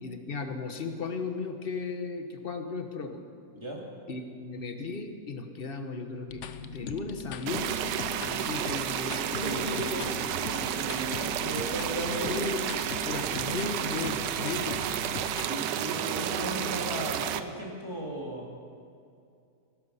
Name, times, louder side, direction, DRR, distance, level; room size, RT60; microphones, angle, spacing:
voice 1, 0.0-3.2 4.1-10.3 12.3-14.8, left 4 dB, 35° left, 6 dB, 1.2 m, -36 dB
sound 1, 6.3-15.5, left 7 dB, 60° left, 0.8 m, -40 dB
sound 2, 7.5-17.4, right 10 dB, 90° right, 1.3 m, -31 dB
voice 2, 9.3-10.1 10.5-12.4 15.4-18.5, right 1 dB, 15° right, -2 dB, 2.7 m, -36 dB
18.5 x 12.0 x 5.6 m, 2.4 s
omnidirectional pair, 1.8 m